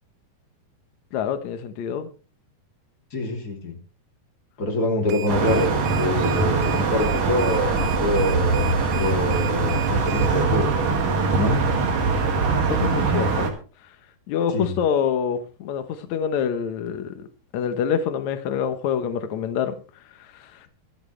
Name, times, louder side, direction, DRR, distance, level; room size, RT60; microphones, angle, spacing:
voice 1, 1.1-2.1 12.7-13.5 14.3-17.3 17.5-19.7 20.2-20.6, left 7 dB, 75° left, 1.7 m, -26 dB
voice 2, 3.1-3.8 4.6-8.6 9.0-10.8 11.4-11.6 14.5-14.8, left 1 dB, 25° left, 2.9 m, -25 dB
sound 1, 5.1-10.4, right 13 dB, 75° right, 2.8 m, -36 dB
sound 2, 5.3-13.5, right 4 dB, 55° right, 3.5 m, -22 dB
24.0 x 8.8 x 3.3 m
omnidirectional pair, 4.8 m